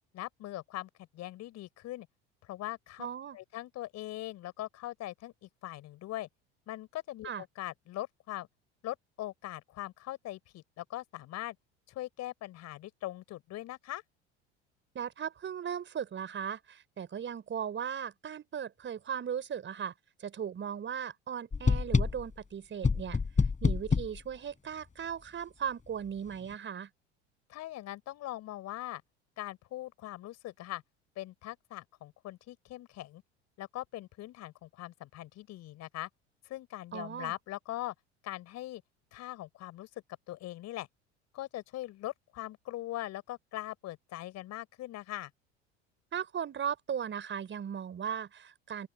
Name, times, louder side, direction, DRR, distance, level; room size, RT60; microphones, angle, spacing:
voice 1, 0.1-2.1 2.4-3.1 3.3-6.3 6.7-8.5 8.8-11.6 11.9-14.0 27.5-29.0 29.4-30.8 31.1-33.2 33.6-36.1 36.4-37.9 38.2-38.8 39.1-39.9 40.3-40.9 41.3-45.3, left 15 dB, 50° left, 5.1 m, -41 dB
voice 2, 3.0-3.4 7.2-7.4 14.9-19.9 20.2-23.2 23.6-26.9 36.9-37.3 46.1-48.9, right 8 dB, 35° right, 5.5 m, -37 dB
sound 1, 21.5-22.3 22.8-24.2, left 5 dB, 20° left, 5.4 m, -27 dB
open air
figure-of-eight pair, 70°, 35 cm